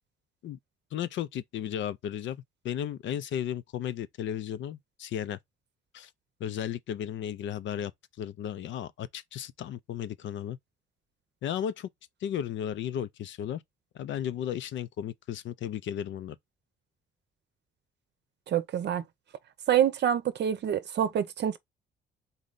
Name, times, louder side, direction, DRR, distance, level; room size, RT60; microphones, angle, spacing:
voice 1, 0.9-5.4 5.9-6.1 6.4-7.9 8.2-10.6 11.4-11.9 12.2-13.6 13.9-16.4, left 10 dB, 70° left, 0.6 m, -34 dB
voice 2, 18.5-19.0 19.7-21.6, right 9 dB, 60° right, 0.6 m, -26 dB
4.0 x 3.2 x 3.9 m
cardioid pair, 90°, 20 cm